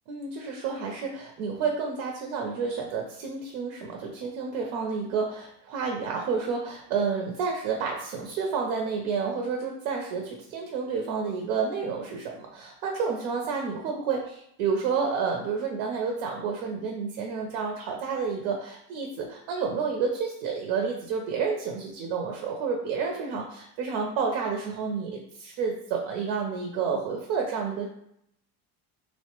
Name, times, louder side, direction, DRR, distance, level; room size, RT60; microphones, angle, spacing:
voice 1, 0.1-27.9, right 5 dB, 80° right, 1 dB, 0.6 m, -30 dB
3.0 x 2.1 x 2.9 m, 0.74 s
cardioid pair, 160°, 38 cm